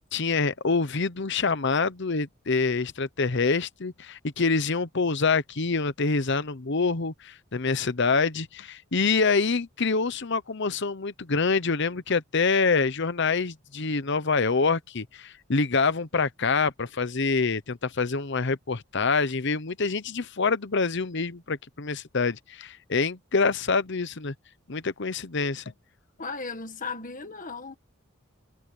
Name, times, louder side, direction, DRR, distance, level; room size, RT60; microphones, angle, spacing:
voice 1, 0.1-24.3 24.7-25.6, left 4 dB, 60° left, 0.9 m, -26 dB
voice 2, 26.2-27.8, left 4 dB, 40° left, 1.7 m, -36 dB
head